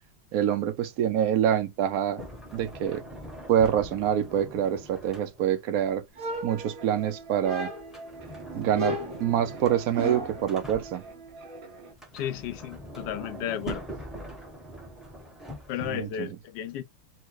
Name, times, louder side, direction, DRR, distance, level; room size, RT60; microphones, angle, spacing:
voice 1, 0.3-2.2 2.5-3.0 3.5-6.0 6.4-7.7 8.5-11.0 15.8-16.3, right 10 dB, 65° right, 0.9 m, -26 dB
Sliding door, 2.2-5.7 7.8-11.3 11.9-16.2, right 1 dB, ahead, 0.8 m, -43 dB
sound 1, 6.2-7.0 7.4-8.1 8.7-10.5, equal, 35° right, 1.1 m, -34 dB
sound 2, 6.5-11.9, right 3 dB, 85° right, 2.2 m, -45 dB
voice 2, 12.1-13.9 15.7-16.8, left 11 dB, 75° left, 1.1 m, -33 dB
4.4 x 2.2 x 4.6 m
omnidirectional pair, 2.0 m